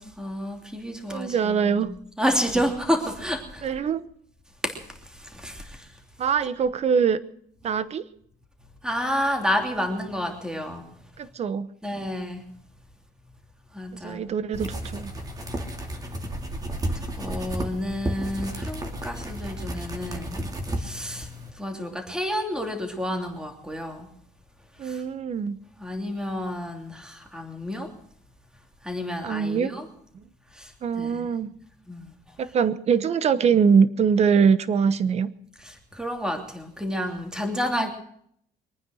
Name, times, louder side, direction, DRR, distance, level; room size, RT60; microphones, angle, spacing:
voice 1, 0.0-1.8 2.2-3.7 4.6-6.0 8.8-10.8 11.8-12.4 13.7-14.2 16.9-24.1 24.8-25.0 25.8-27.9 28.8-29.9 30.5-31.3 31.9-32.1 35.6-37.9, equal, 5° right, 4 dB, 3.0 m, -30 dB
voice 2, 1.1-1.9 3.6-4.1 6.2-7.2 7.6-8.1 11.2-11.7 14.0-15.1 24.8-25.6 29.2-29.7 30.8-31.5 32.4-35.3 37.7-37.9, right 6 dB, 40° right, 15 dB, 1.0 m, -23 dB
sound 1, 14.5-21.5, right 1 dB, 20° right, 2.4 m, -33 dB
23.5 x 9.6 x 6.4 m, 0.67 s
cardioid pair, 140°, 17 cm